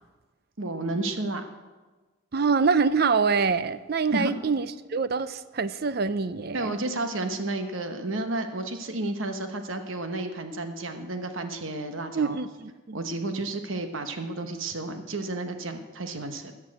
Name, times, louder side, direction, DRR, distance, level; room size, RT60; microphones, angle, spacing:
voice 1, 0.6-1.4 4.1-4.3 6.5-12.4 12.9-16.5, right 2 dB, 70° right, 7 dB, 1.1 m, -31 dB
voice 2, 2.3-6.7 12.1-13.0, right 5 dB, 50° right, 14 dB, 0.5 m, -25 dB
14.0 x 7.3 x 8.5 m, 1.3 s
head